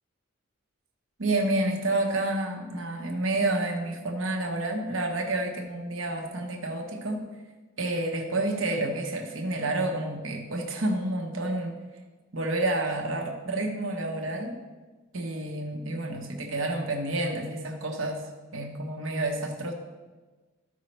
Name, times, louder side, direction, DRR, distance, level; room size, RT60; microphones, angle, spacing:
voice 1, 1.2-7.3 7.8-11.8 12.3-14.6 15.1-18.2 18.5-19.7, right 2 dB, 75° right, 2 dB, 1.1 m, -29 dB
13.5 x 5.5 x 3.3 m, 1.3 s
head